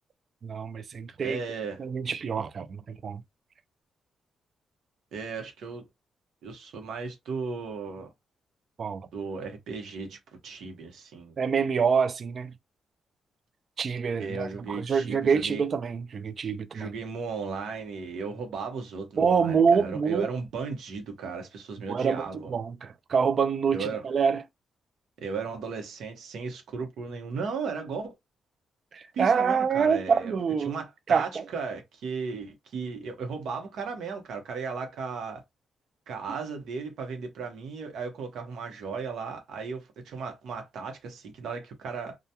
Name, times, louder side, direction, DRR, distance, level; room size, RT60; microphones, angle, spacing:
voice 1, 0.4-1.4 1.8-3.2 8.8-9.1 11.4-12.5 13.8-16.9 19.2-20.3 21.9-24.4 28.9-30.8 31.1-31.4, right 6 dB, 45° right, 0.4 m, -26 dB
voice 2, 1.2-1.8 5.1-5.8 6.4-8.1 9.1-11.3 14.2-15.6 16.7-22.6 23.7-24.0 25.2-28.1 29.1-35.4 36.1-42.2, right 5 dB, 75° right, 0.9 m, -36 dB
2.3 x 2.2 x 2.8 m
cardioid pair, 125°, 0 cm